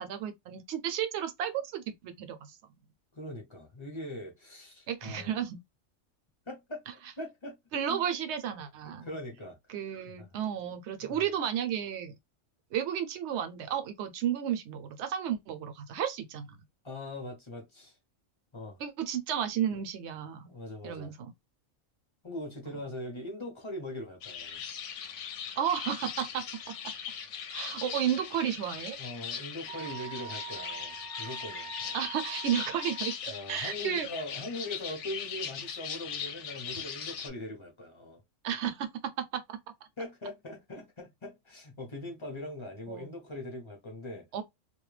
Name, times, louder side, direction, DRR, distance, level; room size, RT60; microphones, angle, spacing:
voice 1, 0.0-2.5 4.9-5.6 7.7-9.1 9.7-12.1 12.7-16.6 18.8-20.5 20.8-21.3 22.7-22.8 25.6-26.7 27.5-29.0 31.9-34.1 38.4-39.6 42.9-43.1 44.3-44.4, right 9 dB, 65° right, 0.8 m, -33 dB
voice 2, 3.1-5.3 6.5-7.6 7.9-8.0 9.0-9.6 10.1-10.4 11.0-11.2 16.8-17.9 18.5-18.8 20.4-21.2 22.2-24.6 25.0-25.1 29.0-32.0 33.3-38.2 40.0-44.2, left 1 dB, 30° left, 0.6 m, -41 dB
sound 1, 24.2-37.3, left 7 dB, 70° left, 0.8 m, -39 dB
Wind instrument woodwind instrument, 29.7-33.2, right 10 dB, 45° right, 0.4 m, -44 dB
2.3 x 2.1 x 3.1 m
omnidirectional pair, 1.4 m